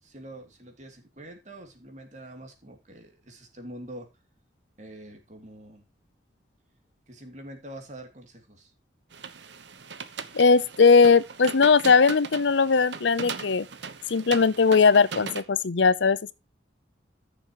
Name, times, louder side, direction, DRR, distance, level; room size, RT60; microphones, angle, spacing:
voice 1, 0.0-4.1 4.8-5.9 7.1-8.7, right 1 dB, 40° right, 2.8 m, -45 dB
sound 1, 9.1-15.4, right 5 dB, 80° right, 1.1 m, -39 dB
voice 2, 10.3-13.7 14.1-16.3, left 5 dB, 80° left, 0.6 m, -19 dB
14.5 x 6.9 x 3.0 m
head